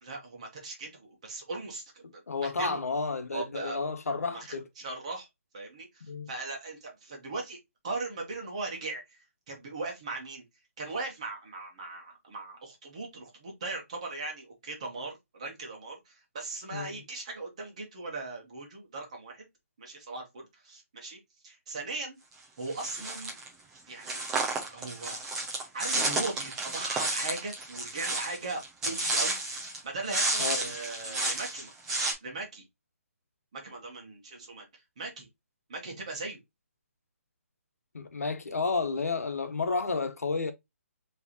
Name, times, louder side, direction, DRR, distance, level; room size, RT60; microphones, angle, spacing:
voice 1, 0.0-2.8 3.3-3.8 4.3-5.3 5.5-7.6 7.8-9.2 9.5-10.4 10.8-19.5 19.8-22.2 22.6-23.3 23.9-24.2 24.7-25.2 25.7-29.4 29.8-31.7 32.2-32.6 33.5-35.3 35.7-36.4, right 3 dB, 25° right, 1.5 m, -39 dB
voice 2, 2.0-4.6 6.0-6.3 16.7-17.0 30.4-30.7 37.9-40.5, left 4 dB, 85° left, 1.1 m, -31 dB
sound 1, 22.7-23.5 24.0-29.8 30.1-32.1, right 2 dB, 5° right, 0.6 m, -31 dB
4.7 x 3.2 x 2.9 m
hypercardioid pair, 180°, 8 cm